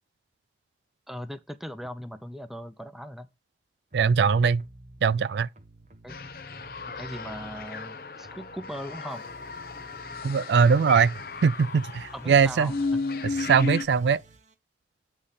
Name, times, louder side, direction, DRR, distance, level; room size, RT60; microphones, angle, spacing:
voice 1, 1.1-3.3 6.0-6.3 6.8-9.3 12.1-13.0, equal, ahead, 0.5 m, -39 dB
sound 1, 3.9-5.0 5.5-7.9 8.2-14.5, right 1 dB, 40° right, 0.9 m, -52 dB
voice 2, 3.9-4.6 5.0-5.5 10.2-11.1 11.4-12.7 13.4-14.2, right 6 dB, 80° right, 0.4 m, -21 dB
sound 2, 6.1-13.8, left 4 dB, 55° left, 0.9 m, -35 dB
8.6 x 3.3 x 5.5 m
head